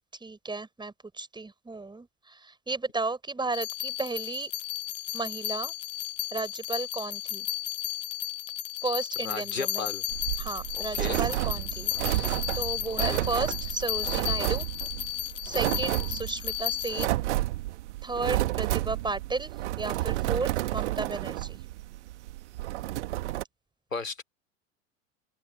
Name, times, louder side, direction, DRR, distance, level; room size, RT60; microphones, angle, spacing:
voice 1, 0.2-4.5 5.1-5.7 6.3-7.5 8.8-9.8 10.4-11.9 12.1-14.7 15.4-17.2 18.0-21.6, right 3 dB, 10° right, 5.9 m, -34 dB
sound 1, 3.5-17.1, left 14 dB, 70° left, 1.0 m, -34 dB
voice 2, 9.2-10.0 10.7-11.2 12.9-13.3 23.9-24.2, left 4 dB, 85° left, 3.5 m, -35 dB
sound 2, 10.1-23.4, right 16 dB, 60° right, 1.5 m, -31 dB
open air
figure-of-eight pair, 80°, 39 cm